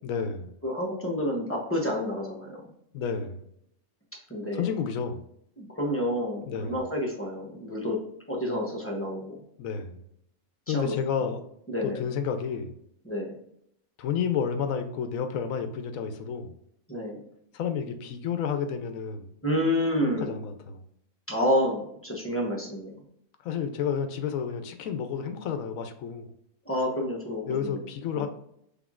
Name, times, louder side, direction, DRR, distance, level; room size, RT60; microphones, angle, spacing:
voice 1, 0.0-0.5 2.9-3.4 4.5-5.2 6.5-6.8 9.6-10.0 10.7-11.5 11.8-12.8 14.0-16.6 17.5-19.3 20.0-20.8 23.4-26.3 27.5-28.3, left 7 dB, 75° left, 8 dB, 1.0 m, -31 dB
voice 2, 0.6-2.6 4.3-4.6 5.6-8.0 8.3-9.4 10.7-10.9 11.7-12.0 13.0-13.4 16.9-17.2 19.4-20.3 21.3-22.9 26.7-27.8 28.1-28.3, equal, 10° left, -1 dB, 0.8 m, -29 dB
5.9 x 3.5 x 2.4 m, 0.74 s
omnidirectional pair, 1.5 m